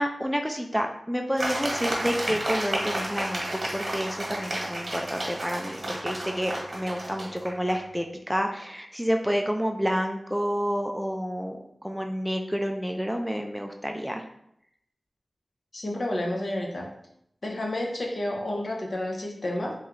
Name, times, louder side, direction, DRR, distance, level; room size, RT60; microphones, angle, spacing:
voice 1, 0.0-3.5 3.7-14.2, equal, ahead, 3 dB, 0.4 m, -29 dB
sound 1, 1.4-7.8, right 1 dB, 55° right, 1.1 m, -32 dB
voice 2, 15.7-16.9 17.4-19.7, left 1 dB, 60° left, 0 dB, 0.8 m, -30 dB
3.1 x 2.9 x 3.7 m, 0.74 s
wide cardioid pair, 65°, 0 cm